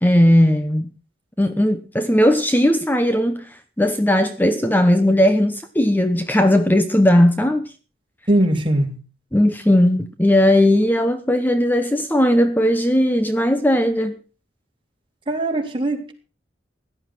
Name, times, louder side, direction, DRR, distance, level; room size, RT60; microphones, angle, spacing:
voice 1, 0.0-0.9 1.4-7.7 9.3-14.2, left 1 dB, 10° left, 1.0 m, -17 dB
voice 2, 8.3-9.0 15.3-16.1, right 1 dB, 30° right, 3.5 m, -20 dB
16.5 x 11.5 x 6.0 m
head